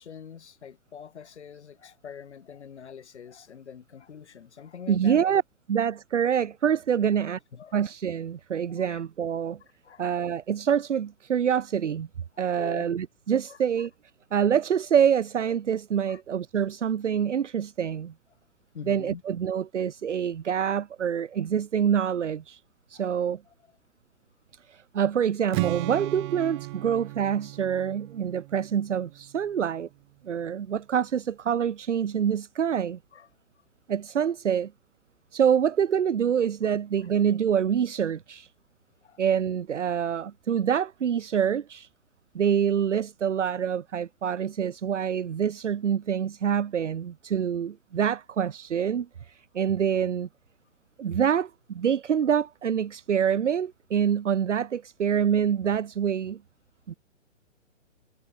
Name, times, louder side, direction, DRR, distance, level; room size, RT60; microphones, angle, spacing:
voice 1, 0.0-5.2 7.5-7.8 8.8-9.0 9.6-10.0 12.3-12.9 13.5-13.9 16.1-16.2 18.7-19.2 22.9-23.1 30.4-30.5 33.1-33.3 36.6-36.8 39.0-39.2, left 7 dB, 60° left, 6.8 m, -44 dB
voice 2, 4.9-5.4 5.7-7.4 7.7-9.6 10.0-12.1 12.4-13.9 14.3-18.1 18.9-22.6 22.9-23.4 24.7-29.9 30.2-33.0 33.9-34.7 35.3-38.5 39.2-41.9 42.3-50.3 51.0-56.4 56.9-57.0, right 8 dB, 70° right, 1.0 m, -26 dB
Strum, 25.5-29.6, right 25 dB, 20° right, 0.7 m, -35 dB
figure-of-eight pair, 130°, 37 cm